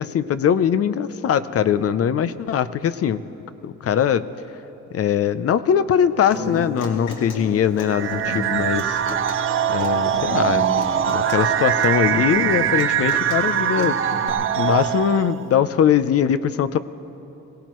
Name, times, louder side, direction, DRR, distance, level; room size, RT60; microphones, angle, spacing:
voice 1, 0.0-3.2 3.6-4.3 4.9-9.0 9.7-14.0 14.6-16.8, left 8 dB, 50° left, 14 dB, 0.6 m, -21 dB
Human voice / Acoustic guitar, 6.3-14.3, left 2 dB, 80° left, 2.3 m, -34 dB
sound 1, 7.9-15.5, right 9 dB, 45° right, 0.5 m, -22 dB
23.5 x 17.0 x 3.1 m, 2.9 s
cardioid pair, 90°, 30 cm